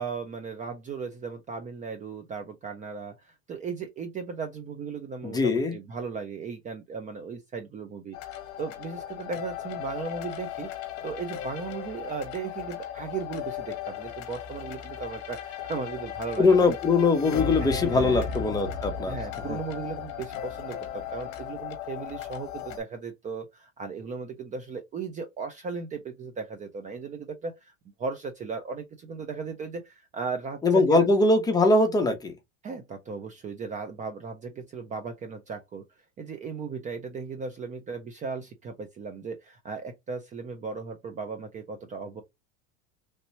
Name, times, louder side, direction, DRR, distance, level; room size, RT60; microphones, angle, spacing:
voice 1, 0.0-10.7 11.0-16.7 17.6-18.3 19.1-27.7 28.0-31.1 32.6-35.8 36.2-42.2, right 5 dB, 25° right, 0.5 m, -36 dB
voice 2, 5.2-5.7 16.4-19.2 19.5-19.6 30.6-32.3, left 3 dB, 10° left, 0.8 m, -22 dB
sound 1, 8.1-22.8, left 8 dB, 50° left, 1.0 m, -36 dB
3.2 x 2.9 x 2.8 m
supercardioid pair, 135°, 32 cm